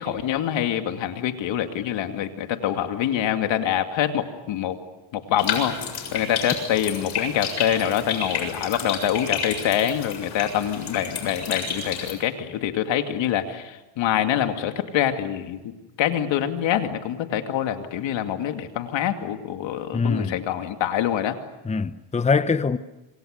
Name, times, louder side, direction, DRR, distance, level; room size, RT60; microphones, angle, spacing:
voice 1, 0.0-4.8 5.1-15.7 16.0-21.4, left 10 dB, 80° left, 2.6 m, -25 dB
sound 1, 5.4-12.1, left 6 dB, 65° left, 7.3 m, -31 dB
voice 2, 19.9-20.4 21.6-22.8, left 4 dB, 15° left, 0.8 m, -23 dB
27.0 x 26.5 x 6.6 m
cardioid pair, 110°, 44 cm